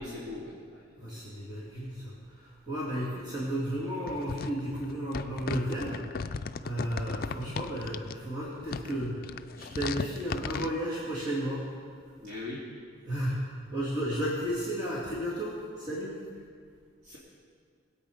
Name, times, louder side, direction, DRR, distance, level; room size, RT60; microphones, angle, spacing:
voice 1, 0.0-1.2 7.3-7.5 12.2-12.6 17.0-17.2, left 2 dB, 65° right, -7 dB, 2.6 m, -41 dB
voice 2, 1.0-11.7 13.0-16.2, equal, 20° right, -9 dB, 2.7 m, -33 dB
sound 1, 4.1-8.2 8.6-10.7, left 4 dB, 45° left, 0.4 m, -36 dB
21.5 x 8.4 x 5.1 m, 2.1 s
head